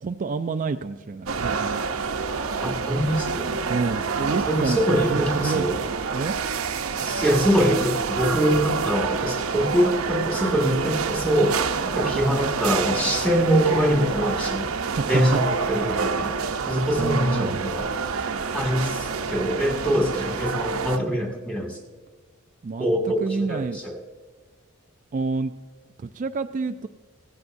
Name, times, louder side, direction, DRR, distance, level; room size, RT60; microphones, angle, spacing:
voice 1, 0.0-1.8 3.7-5.8 6.1-6.4 14.8-15.4 16.5-17.7 22.6-22.9 23.2-23.8 25.1-25.5 26.0-26.9, right 4 dB, 40° right, 7 dB, 0.4 m, -28 dB
sound 1, 1.3-21.0, right 5 dB, 75° right, 0.8 m, -27 dB
voice 2, 2.6-3.5 4.5-5.8 7.0-14.7 15.1-16.3 16.7-17.9 18.5-21.8 22.8-24.0, equal, 5° left, 1 dB, 2.1 m, -24 dB
16.5 x 14.0 x 2.6 m, 1.4 s
head